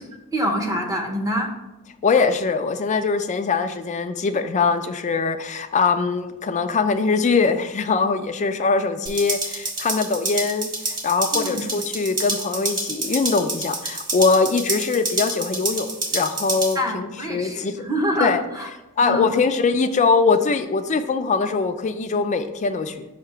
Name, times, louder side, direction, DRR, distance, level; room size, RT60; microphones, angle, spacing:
voice 1, 0.3-1.5 11.3-11.6 16.7-18.7 19.0-19.3, equal, 15° right, 2 dB, 0.7 m, -25 dB
voice 2, 2.0-17.8 18.2-18.4 19.0-23.1, left 4 dB, 35° left, 8 dB, 0.4 m, -22 dB
sound 1, 9.1-16.7, right 2 dB, 40° right, 1.5 m, -28 dB
5.9 x 2.8 x 5.5 m, 1.0 s
head